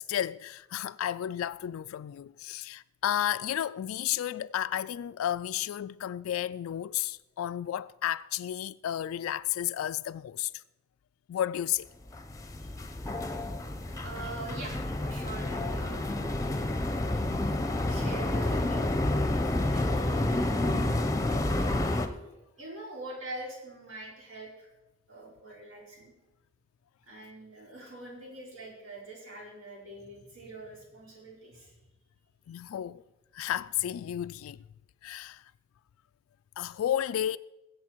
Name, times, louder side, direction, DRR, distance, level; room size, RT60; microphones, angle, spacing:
voice 1, 0.0-10.6 11.3-11.9 32.5-33.0 33.3-34.6 35.0-35.4 36.6-37.4, left 11 dB, 90° left, 0.3 m, -32 dB
sound 1, 12.1-22.1, left 1 dB, 15° left, 0.8 m, -29 dB
voice 2, 13.9-16.4 17.8-18.9 19.7-21.2 21.5-21.7 22.2-24.7 25.1-26.1 27.1-31.8 32.5-32.6, right 2 dB, 70° right, 4.8 m, -44 dB
20.0 x 8.0 x 4.6 m
head